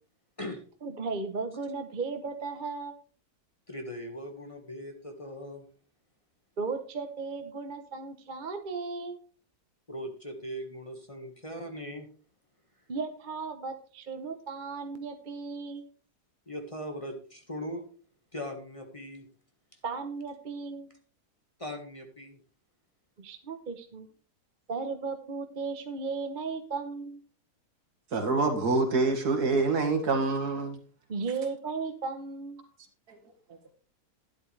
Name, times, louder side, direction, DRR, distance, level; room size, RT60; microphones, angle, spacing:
voice 1, 0.8-2.9 6.6-9.2 12.9-15.9 19.8-20.9 23.2-24.1 24.7-27.2 31.1-32.6, right 4 dB, 40° right, 7 dB, 0.8 m, -35 dB
voice 2, 3.7-5.6 9.9-12.1 16.5-17.8 18.3-19.3 21.6-22.4, equal, 20° left, 3 dB, 1.5 m, -39 dB
voice 3, 28.1-30.8, right 3 dB, 75° right, 4 dB, 2.4 m, -26 dB
12.0 x 10.5 x 3.2 m, 0.40 s
omnidirectional pair, 1.7 m